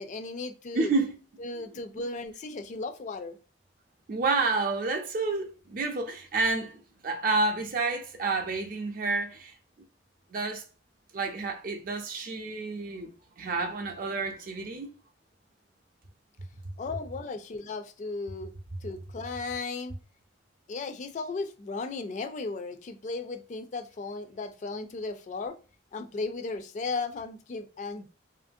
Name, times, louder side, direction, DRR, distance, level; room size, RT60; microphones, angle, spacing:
voice 1, 0.0-0.9 1.4-3.4 16.8-18.5 18.8-19.9 20.7-25.5 25.9-28.1, left 3 dB, 40° left, 0.3 m, -35 dB
voice 2, 0.7-1.2 1.6-1.7 4.1-9.6 10.3-10.6 11.1-13.1 13.4-14.9, right 3 dB, 50° right, 0.5 m, -29 dB
2.9 x 2.5 x 2.5 m
head